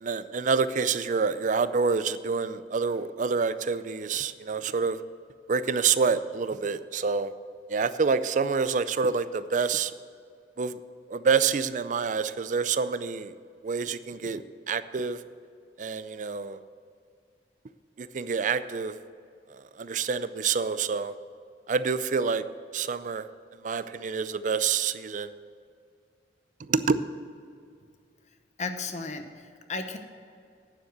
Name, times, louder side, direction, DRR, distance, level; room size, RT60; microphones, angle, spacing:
voice 1, 0.0-5.0 5.5-7.3 7.7-9.9 10.6-10.8 11.1-13.3 13.6-14.4 14.7-15.2 15.8-16.6 18.0-18.9 19.8-21.1 21.7-22.4 22.7-23.3 23.6-25.3 26.7-27.0, right 5 dB, 45° right, 14 dB, 0.4 m, -27 dB
voice 2, 28.6-30.0, left 3 dB, 40° left, 7 dB, 0.9 m, -34 dB
9.5 x 7.2 x 8.0 m, 2.3 s
head